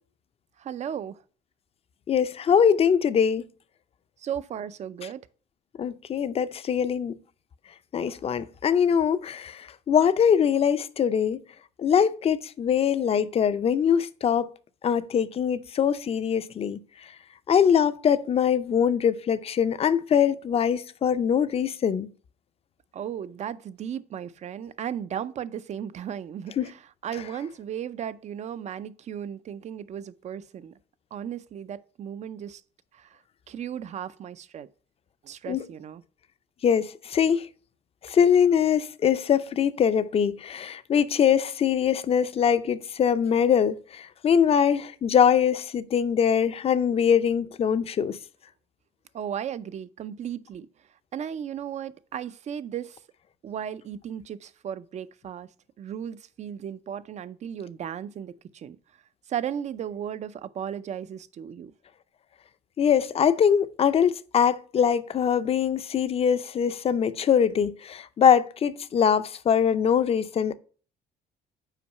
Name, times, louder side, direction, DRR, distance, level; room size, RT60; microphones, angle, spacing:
voice 1, 0.6-1.2 4.2-5.2 22.9-30.7 31.1-32.6 32.9-33.2 33.5-34.7 35.2-36.0 49.1-50.7 51.1-53.0 53.4-55.5 55.8-58.8 59.3-61.7, right 9 dB, 45° right, 0.5 m, -35 dB
voice 2, 2.1-3.4 5.8-7.2 7.9-9.6 9.9-11.4 11.8-14.5 14.8-16.8 17.5-22.1 26.6-26.7 35.5-35.7 36.6-37.5 38.0-48.2 62.8-70.5, left 8 dB, 35° left, 0.5 m, -22 dB
5.8 x 4.6 x 5.4 m
cardioid pair, 110°, 17 cm